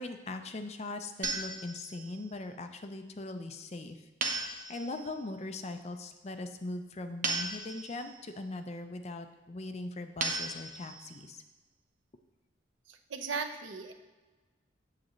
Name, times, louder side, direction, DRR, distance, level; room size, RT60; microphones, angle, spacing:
voice 1, 0.0-11.4, left 2 dB, 35° left, 7 dB, 0.5 m, -40 dB
sound 1, 1.2-2.2 4.2-5.1 7.2-8.1 10.2-11.1, right 3 dB, 45° right, 0.9 m, -36 dB
voice 2, 12.9-13.9, right 5 dB, 90° right, 7 dB, 0.6 m, -37 dB
7.4 x 7.4 x 3.1 m, 1.2 s
head